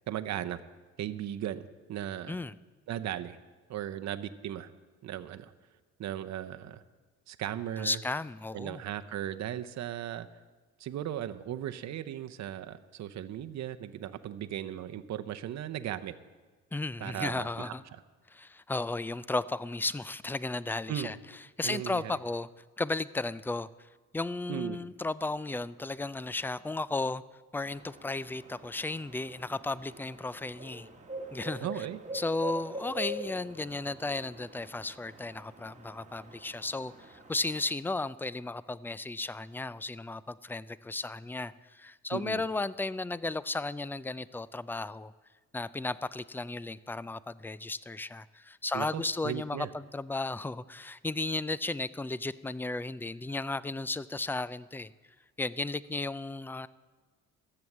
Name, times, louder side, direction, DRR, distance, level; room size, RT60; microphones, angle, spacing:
voice 1, 0.1-0.6 1.0-2.4 2.9-3.4 3.7-4.7 5.0-5.5 6.0-6.8 7.3-8.0 8.5-10.3 10.8-16.1 17.0-17.7 20.9-21.1 21.6-22.1 24.5-24.8 31.6-32.0 42.1-42.4 48.7-49.7, right 11 dB, 65° right, 9 dB, 0.7 m, -37 dB
voice 2, 7.8-8.8 16.7-17.8 18.3-21.2 21.6-22.5 22.8-23.7 24.1-27.2 27.5-30.9 31.3-31.9 32.1-45.1 45.5-54.9 55.4-56.7, left 2 dB, 5° left, 18 dB, 0.3 m, -34 dB
sound 1, 27.6-37.7, right 1 dB, 25° right, 1.6 m, -44 dB
14.0 x 7.9 x 7.3 m, 1.4 s
cardioid pair, 90°, 30 cm